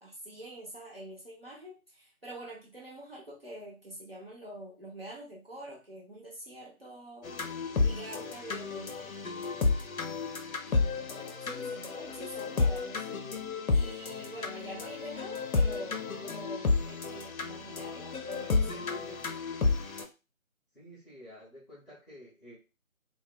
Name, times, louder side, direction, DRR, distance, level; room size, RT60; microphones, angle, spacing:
voice 1, 0.0-7.3 7.8-9.5 10.6-13.1 13.7-19.3, right 1 dB, 45° right, -4 dB, 0.7 m, -46 dB
sound 1, 7.2-20.0, left 4 dB, 75° left, 0.6 m, -31 dB
voice 2, 20.7-22.5, equal, ahead, -13 dB, 0.7 m, -51 dB
2.6 x 2.2 x 2.4 m, 0.30 s
figure-of-eight pair, 160°, 43 cm